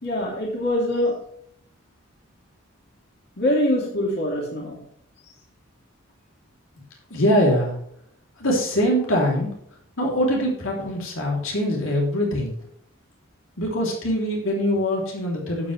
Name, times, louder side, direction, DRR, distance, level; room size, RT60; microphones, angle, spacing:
voice 1, 0.0-1.1 3.4-4.8, left 1 dB, 50° left, -3 dB, 3.0 m, -23 dB
voice 2, 7.1-7.8 8.4-9.5 10.0-12.5 13.6-15.7, equal, 70° left, -2 dB, 3.1 m, -23 dB
11.5 x 8.2 x 3.3 m, 0.67 s
head